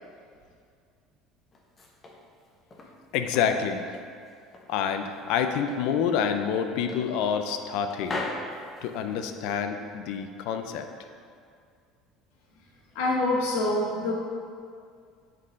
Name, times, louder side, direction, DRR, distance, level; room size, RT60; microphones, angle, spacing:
sound 1, 1.5-3.0 3.3-4.7 5.1-5.9 6.3-6.4 6.9-7.7 8.0-9.4, left 2 dB, 20° left, 0.6 m, -39 dB
voice 1, 3.1-3.9 4.7-8.2 8.8-10.9, left 7 dB, 60° left, 7 dB, 0.4 m, -27 dB
voice 2, 12.9-14.1, left 2 dB, 80° left, -1 dB, 1.2 m, -25 dB
7.6 x 4.0 x 3.7 m, 2.2 s
cardioid pair, 175°, 0 cm